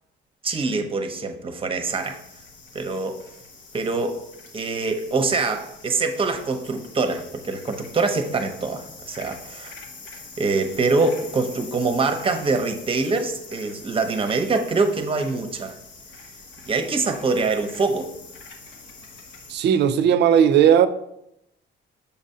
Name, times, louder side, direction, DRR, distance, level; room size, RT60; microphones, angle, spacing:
voice 1, 0.4-2.2 2.7-3.2 3.7-4.2 4.5-9.7 10.4-15.8 16.7-18.1, right 3 dB, 30° right, 0.7 m, -24 dB
sound 1, 1.9-19.6, left 4 dB, 75° left, 1.0 m, -44 dB
voice 2, 19.5-20.9, right 9 dB, 60° right, 0.5 m, -16 dB
6.9 x 2.6 x 5.4 m
cardioid pair, 130°, 20 cm